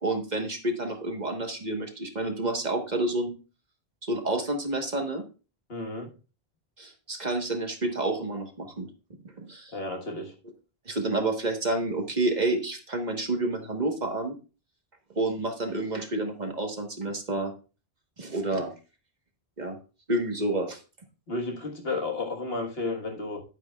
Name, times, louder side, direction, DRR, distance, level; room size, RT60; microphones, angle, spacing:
voice 1, 0.0-3.3 4.0-5.2 6.8-8.9 9.5-9.7 10.9-14.3 15.1-17.5 18.2-18.7 19.6-19.8 20.1-20.8, right 2 dB, 45° right, 1.4 m, -29 dB
voice 2, 5.7-6.1 9.7-10.3 21.3-23.4, left 2 dB, 75° left, 1.8 m, -32 dB
10.5 x 9.0 x 2.3 m
omnidirectional pair, 1.0 m